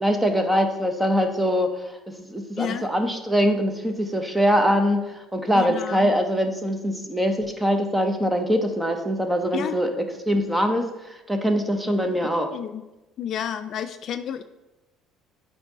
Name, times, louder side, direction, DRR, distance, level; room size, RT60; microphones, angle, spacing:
voice 1, 0.0-1.9 2.2-12.5, equal, 5° right, 5 dB, 0.7 m, -23 dB
voice 2, 2.6-2.9 5.5-6.1 9.5-9.8 12.5-12.8 13.2-14.4, left 9 dB, 50° left, 10 dB, 0.3 m, -30 dB
7.8 x 2.7 x 4.7 m, 1.0 s
cardioid pair, 115°, 0 cm